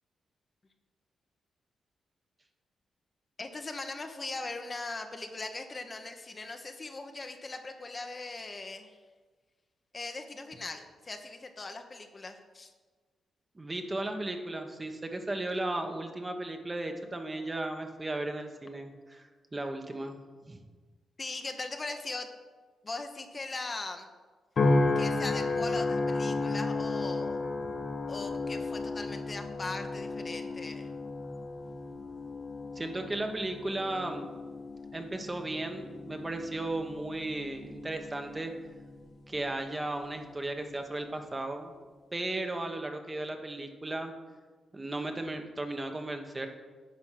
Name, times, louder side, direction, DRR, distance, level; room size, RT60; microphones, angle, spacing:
voice 1, 3.4-9.0 9.9-12.7 21.2-22.3 22.8-24.1 24.9-27.4 28.1-30.9, left 3 dB, 40° left, 6 dB, 1.0 m, -40 dB
voice 2, 13.5-20.2 20.4-20.6 32.7-34.3 34.9-38.5 39.3-41.7 42.1-44.1 44.7-46.5, right 2 dB, 25° right, 5 dB, 1.2 m, -35 dB
sound 1, 24.6-39.0 39.6-40.0, left 3 dB, 60° left, 1.2 m, -33 dB
9.5 x 5.2 x 5.9 m, 1.4 s
cardioid pair, 65°, 0 cm